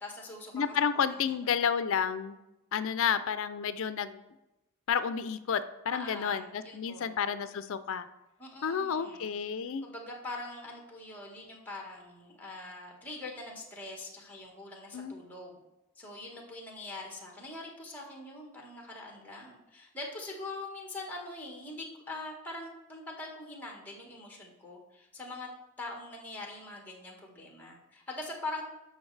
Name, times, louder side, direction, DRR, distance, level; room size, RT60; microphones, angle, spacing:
voice 1, 0.0-0.7 1.4-1.5 5.9-7.1 8.4-9.3 9.8-15.6 16.0-25.5 25.8-28.6, left 2 dB, 10° left, 0 dB, 1.4 m, -43 dB
voice 2, 0.5-2.4 2.7-4.2 4.9-8.1 8.6-9.9 14.9-15.1, left 7 dB, 60° left, 13 dB, 0.4 m, -31 dB
13.5 x 5.2 x 3.3 m, 0.97 s
head